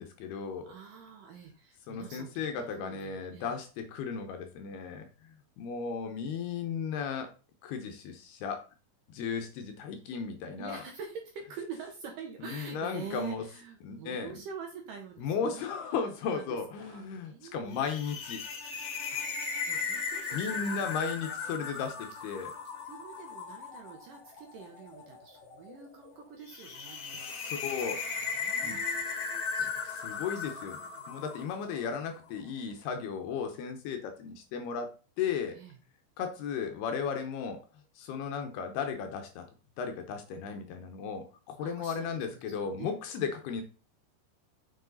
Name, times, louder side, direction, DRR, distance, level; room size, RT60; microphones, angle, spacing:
voice 1, 0.0-0.7 1.9-7.3 7.6-8.6 9.1-10.8 12.4-13.4 13.8-14.4 15.2-18.4 20.3-22.5 27.1-28.0 28.6-28.8 29.6-29.7 30.0-30.8 31.1-34.9 35.2-35.6 36.2-37.6 38.0-39.5 39.8-43.6, left 6 dB, 75° left, 6 dB, 2.7 m, -35 dB
voice 2, 0.6-3.6 10.6-15.7 16.0-16.1 16.3-17.9 19.1-21.0 22.8-27.7 28.3-31.0 35.5-35.7 41.6-43.4, right 6 dB, 70° right, 3 dB, 2.2 m, -46 dB
sound 1, 17.7-32.1, left 5 dB, 55° left, 2.3 m, -37 dB
7.2 x 7.1 x 4.0 m, 0.35 s
omnidirectional pair, 5.1 m